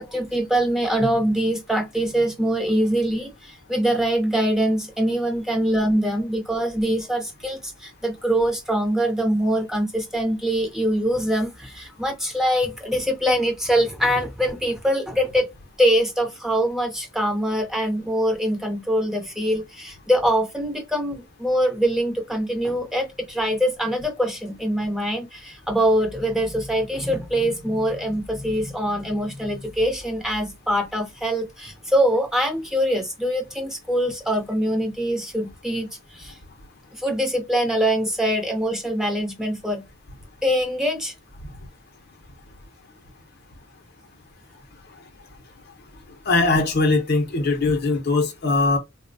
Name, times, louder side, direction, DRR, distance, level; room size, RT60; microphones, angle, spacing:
voice 1, 0.0-15.5 15.8-36.4 36.9-39.8 40.4-41.1, equal, ahead, 0.6 m, -23 dB
voice 2, 46.3-48.8, left 3 dB, 50° left, 0.7 m, -20 dB
4.0 x 2.1 x 2.6 m
head